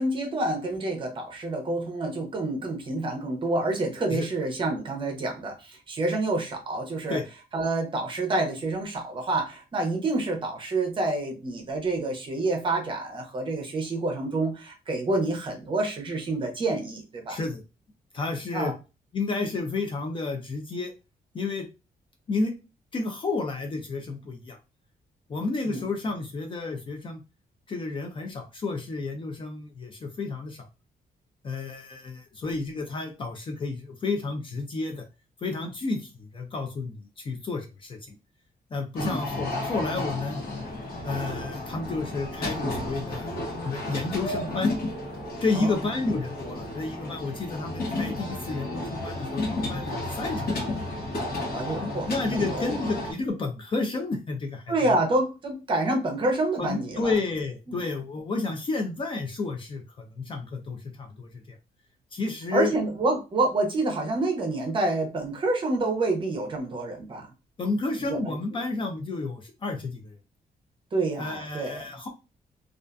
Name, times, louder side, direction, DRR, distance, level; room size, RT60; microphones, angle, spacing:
voice 1, 0.0-7.2 7.5-17.4 18.5-18.7 25.7-25.8 39.0-39.2 45.5-45.8 51.5-52.6 54.7-57.1 57.7-57.8 62.5-67.3 68.0-68.3 70.9-71.9, right 2 dB, 30° right, 1 dB, 0.6 m, -28 dB
voice 2, 17.3-17.6 18.1-18.7 19.1-20.9 21.3-21.7 22.3-22.5 22.9-24.6 25.3-27.2 27.7-30.7 31.4-35.0 35.4-38.2 38.7-40.4 41.0-43.4 43.6-44.7 45.4-50.6 51.8-54.9 56.6-61.4 62.1-62.7 67.6-70.2 71.2-72.1, left 3 dB, 30° left, 3 dB, 0.4 m, -31 dB
sound 1, 39.0-53.1, left 2 dB, 65° left, 1.1 m, -32 dB
2.5 x 2.3 x 2.2 m, 0.28 s
wide cardioid pair, 180°, 17 cm